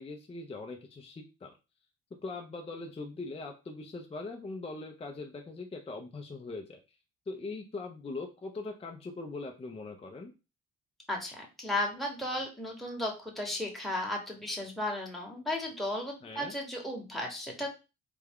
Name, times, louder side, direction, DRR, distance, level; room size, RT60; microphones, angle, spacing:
voice 1, 0.0-1.5 2.2-6.8 7.3-10.3 16.2-16.5, left 3 dB, 20° left, 3 dB, 0.5 m, -41 dB
voice 2, 11.1-17.7, left 1 dB, ahead, -1 dB, 1.1 m, -35 dB
3.4 x 2.3 x 3.5 m, 0.29 s
cardioid pair, 90°, 30 cm